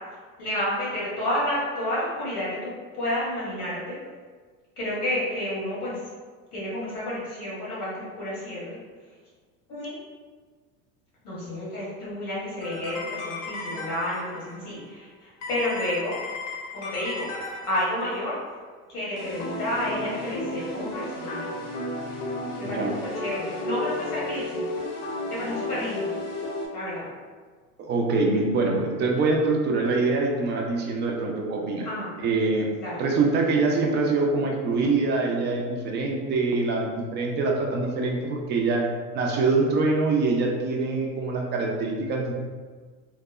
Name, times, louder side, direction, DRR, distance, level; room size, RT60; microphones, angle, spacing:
voice 1, 0.4-4.0 4.8-6.0 6.5-8.8 9.7-9.9 11.2-16.2 16.7-17.3 17.7-18.3 18.9-21.4 22.6-24.6 25.3-26.1 26.7-27.0 31.8-32.1 32.8-33.0, left 1 dB, 90° left, -8 dB, 1.3 m, -30 dB
sound 1, 12.6-14.5 15.4-18.2 19.2-26.7, left 2 dB, 60° left, 0.7 m, -33 dB
voice 2, 27.8-31.9 32.2-32.7 33.0-38.8 39.1-42.3, right 3 dB, 25° right, 0 dB, 0.4 m, -24 dB
2.8 x 2.0 x 2.3 m, 1.5 s
hypercardioid pair, 90°, 44 cm